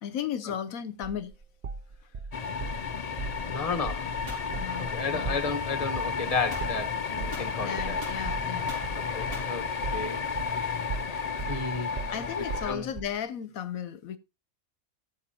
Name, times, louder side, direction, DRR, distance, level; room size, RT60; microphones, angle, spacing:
voice 1, 0.0-1.3 4.5-5.4 7.6-8.8 12.1-14.2, left 9 dB, 80° left, 1.2 m, -35 dB
sound 1, 1.0-2.8 3.2-3.5 3.8-4.1 4.4-10.6 10.9-13.2, right 4 dB, 70° right, 0.4 m, -38 dB
sound 2, 2.3-12.7, left 5 dB, 45° left, 0.5 m, -32 dB
voice 2, 3.5-4.2 4.8-8.0 8.9-10.2 11.5-12.3 12.6-12.9, left 4 dB, 25° left, 1.5 m, -33 dB
sound 3, 4.3-4.5 6.5-6.7 7.3-8.3 8.7-8.9 9.3-9.6, equal, 40° right, 4.0 m, -42 dB
13.5 x 6.2 x 4.3 m
omnidirectional pair, 1.5 m